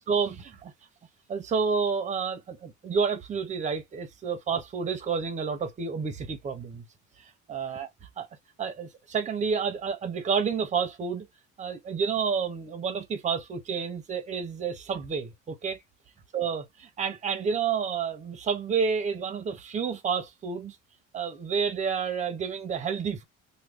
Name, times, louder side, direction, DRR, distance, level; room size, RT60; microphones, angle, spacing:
voice 1, 0.1-0.7 1.3-6.8 7.2-7.9 8.2-8.3 8.6-11.3 11.6-15.8 16.3-20.8 21.1-23.2, right 6 dB, 25° right, 0.6 m, -30 dB
3.1 x 2.2 x 3.4 m
cardioid pair, 165°, 30 cm